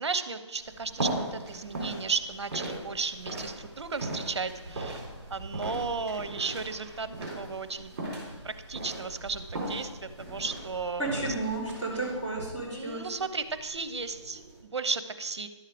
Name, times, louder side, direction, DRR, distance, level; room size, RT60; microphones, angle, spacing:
voice 1, 0.0-5.0 5.3-7.9 8.4-11.3 12.7-14.4 14.7-15.5, right 4 dB, 60° right, 12 dB, 0.8 m, -34 dB
sound 1, 0.6-14.6, right 1 dB, 30° right, 3.5 m, -39 dB
voice 2, 11.0-13.0, right 2 dB, 20° left, -10 dB, 3.6 m, -32 dB
11.0 x 6.5 x 5.0 m, 1.2 s
hypercardioid pair, 175°, 16 cm